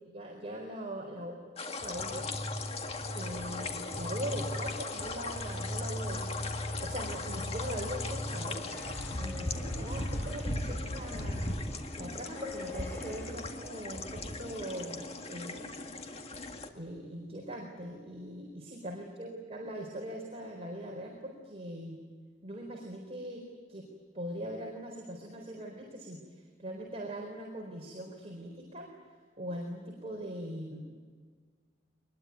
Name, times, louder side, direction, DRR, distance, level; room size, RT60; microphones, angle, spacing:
voice 1, 0.1-1.4 1.8-2.3 3.1-6.5 6.8-8.7 9.1-15.9 16.7-22.0 22.4-23.9 24.1-28.9 29.4-30.9, right 1 dB, 35° right, 0 dB, 4.3 m, -41 dB
sound 1, 1.6-16.7, left 2 dB, 35° left, 1.9 m, -38 dB
sound 2, 1.8-13.4, left 1 dB, 10° left, 3.8 m, -41 dB
24.5 x 21.5 x 9.5 m, 1.6 s
head